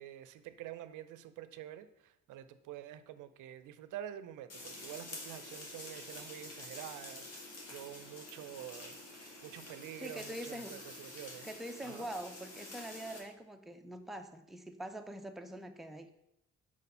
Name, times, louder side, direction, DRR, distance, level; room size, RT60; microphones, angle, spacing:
voice 1, 0.0-11.5 11.8-12.1, right 11 dB, 85° right, 13 dB, 0.5 m, -48 dB
sound 1, 4.5-13.2, left 2 dB, 55° left, 2.0 m, -48 dB
voice 2, 10.0-10.8 11.4-16.1, right 1 dB, ahead, 5 dB, 0.5 m, -44 dB
4.8 x 4.1 x 5.4 m, 0.82 s
cardioid pair, 90°, 30 cm